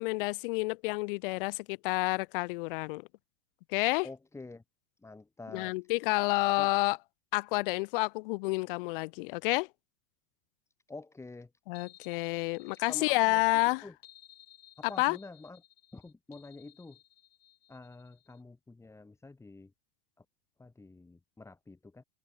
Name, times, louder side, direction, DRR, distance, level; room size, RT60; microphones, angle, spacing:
voice 1, 0.0-3.0 3.7-4.1 5.5-7.0 7.3-9.7 11.7-13.8 15.0-15.2, left 24 dB, 65° left, 0.5 m, -29 dB
voice 2, 4.0-4.6 5.0-5.8 6.4-6.7 10.9-11.5 12.9-13.4 13.8-14.0 14.8-15.6 15.9-17.0 17.7-19.7 20.2-20.3 20.6-22.0, left 3 dB, 10° left, 5.3 m, -48 dB
sound 1, 11.7-18.4, left 13 dB, 90° left, 7.7 m, -59 dB
open air
supercardioid pair, 130°, 29 cm